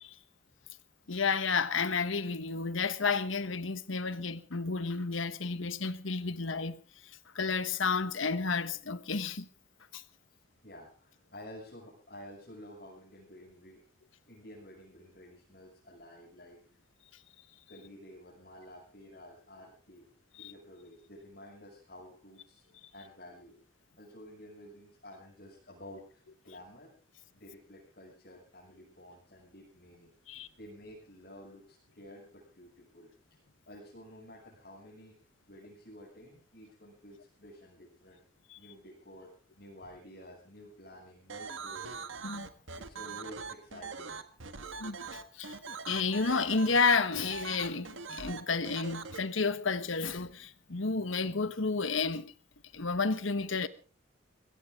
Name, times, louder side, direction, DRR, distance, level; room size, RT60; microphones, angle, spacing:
voice 1, 1.1-6.8 7.3-9.5 9.9-10.0 20.4-20.5 30.3-30.5 38.5-38.6 42.2-42.5 44.8-45.0 45.3-45.6 45.9-52.3 52.7-53.7, left 4 dB, 85° left, 1.3 m, -31 dB
voice 2, 10.6-13.8 14.3-16.6 17.7-20.1 20.4-22.6 22.9-23.6 24.0-26.9 27.3-30.1 30.6-33.1 33.7-35.2 35.5-38.2 38.6-39.3 39.6-42.0 42.8-44.2, left 1 dB, 50° left, 6.5 m, -51 dB
sound 1, 41.3-49.2, right 5 dB, 85° right, 1.6 m, -42 dB
22.0 x 17.0 x 3.7 m
head